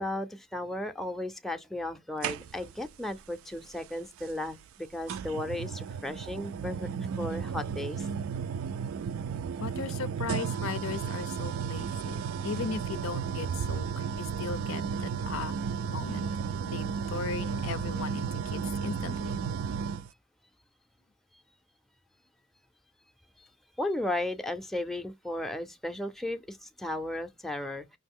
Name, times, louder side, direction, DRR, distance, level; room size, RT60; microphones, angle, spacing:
voice 1, 0.0-6.9 7.2-8.1 23.4-23.5 23.8-28.0, left 1 dB, ahead, 0.4 m, -35 dB
sound 1, 2.2-2.9 4.2-4.3 5.1-20.1, right 6 dB, 90° right, 0.3 m, -33 dB
voice 2, 9.6-15.6 15.9-16.3 16.7-19.4, left 5 dB, 85° left, 0.5 m, -37 dB
5.3 x 2.8 x 3.6 m
head